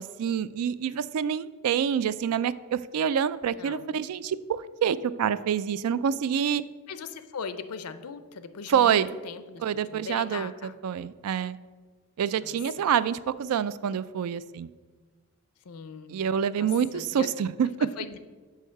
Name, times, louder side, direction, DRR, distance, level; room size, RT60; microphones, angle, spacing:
voice 1, 0.0-6.6 8.7-9.1 9.6-11.6 12.2-14.7 16.1-17.9, right 8 dB, 80° right, 16 dB, 0.3 m, -27 dB
voice 2, 3.6-4.0 6.9-10.7 12.4-12.6 15.7-16.1 16.6-16.7 16.9-17.3 17.8-18.2, left 5 dB, 85° left, 12 dB, 0.6 m, -39 dB
6.5 x 5.5 x 6.3 m, 1.4 s
head